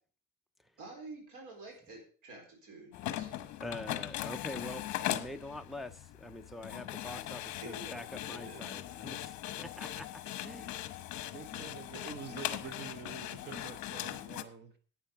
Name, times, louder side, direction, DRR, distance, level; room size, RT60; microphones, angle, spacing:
voice 1, 0.8-3.6 7.6-9.1 11.5-11.8, right 2 dB, 65° right, 4.4 m, -50 dB
sound 1, 2.9-14.4, left 14 dB, 55° left, 1.0 m, -40 dB
voice 2, 3.6-10.7, left 1 dB, ahead, 0.4 m, -45 dB
voice 3, 11.3-14.7, right 6 dB, 30° right, 0.8 m, -46 dB
11.5 x 9.0 x 5.3 m
cardioid pair, 165°, 34 cm